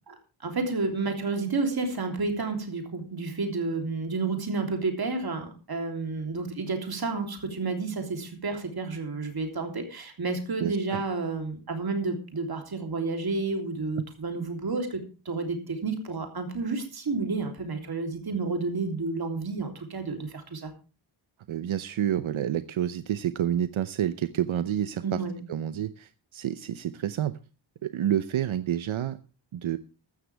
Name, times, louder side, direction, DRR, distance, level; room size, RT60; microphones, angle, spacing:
voice 1, 0.4-15.0 15.2-20.7 25.0-25.4, right 3 dB, 50° right, 4 dB, 3.3 m, -30 dB
voice 2, 10.6-11.0 21.5-25.2 25.5-27.4 27.8-29.2 29.5-29.8, right 10 dB, 85° right, 12 dB, 0.8 m, -29 dB
15.0 x 12.5 x 3.4 m, 0.34 s
wide cardioid pair, 175°, 47 cm